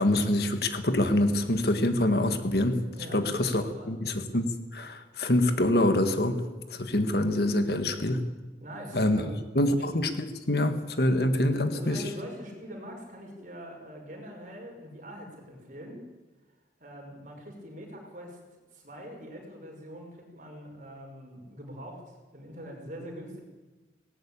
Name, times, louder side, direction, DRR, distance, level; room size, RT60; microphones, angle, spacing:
voice 1, 0.0-2.8 3.1-6.4 6.7-8.2 8.9-9.2 9.6-12.0, left 1 dB, 60° left, 8 dB, 1.8 m, -25 dB
voice 2, 2.9-3.9 8.6-9.9 11.7-16.0 16.8-18.4 18.7-23.4, equal, 45° right, 1 dB, 5.8 m, -43 dB
19.0 x 18.0 x 8.9 m, 1.2 s
head